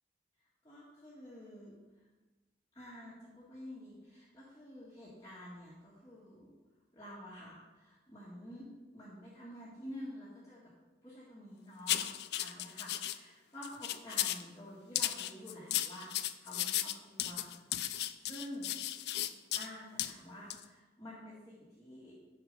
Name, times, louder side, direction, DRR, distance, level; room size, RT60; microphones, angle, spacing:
voice 1, 0.6-1.7 2.7-6.5 6.9-10.7 11.0-17.5 17.8-18.7 19.6-22.2, equal, 20° left, -8 dB, 1.9 m, -49 dB
sound 1, 11.9-13.2 13.6-14.5 15.0-19.7 20.0-20.1 20.5-20.6, left 13 dB, 60° left, 0.4 m, -35 dB
10.0 x 6.6 x 5.4 m, 1.2 s
head